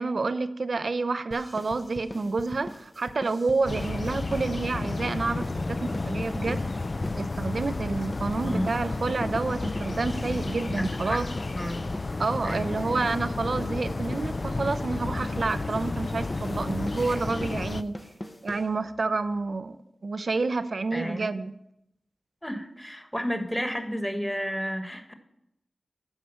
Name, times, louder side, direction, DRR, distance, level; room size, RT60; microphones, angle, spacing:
voice 1, 0.0-6.6 7.1-11.3 12.2-18.0 18.4-19.8 20.0-21.5, right 3 dB, 65° right, 12 dB, 0.6 m, -29 dB
sound 1, 1.3-19.1, left 1 dB, 20° left, 0.8 m, -42 dB
sound 2, 3.6-17.8, left 3 dB, 45° left, 0.4 m, -32 dB
voice 2, 8.4-8.7 10.7-11.2 11.5-11.9 12.4-12.7 17.7-17.9 20.9-21.3 22.4-25.1, equal, 5° left, 6 dB, 1.4 m, -32 dB
12.5 x 5.0 x 7.0 m, 0.81 s
wide cardioid pair, 65°, 0 cm